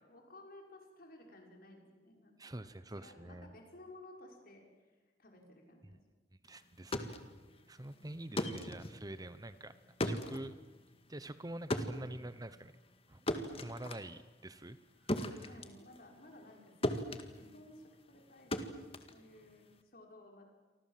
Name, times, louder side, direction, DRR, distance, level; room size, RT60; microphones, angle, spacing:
voice 1, 0.0-6.0 8.0-8.2 15.4-18.8 19.1-20.5, left 1 dB, 55° left, 2 dB, 6.2 m, -57 dB
voice 2, 2.4-3.5 6.4-7.2 7.7-9.7 10.0-10.5 11.1-12.7 13.1-13.2 13.6-14.8 15.0-15.5, right 1 dB, 20° right, 13 dB, 1.0 m, -46 dB
sound 1, 6.7-16.6 16.8-19.8, left 1 dB, 35° left, 2.0 m, -39 dB
29.0 x 24.5 x 7.6 m, 1.2 s
head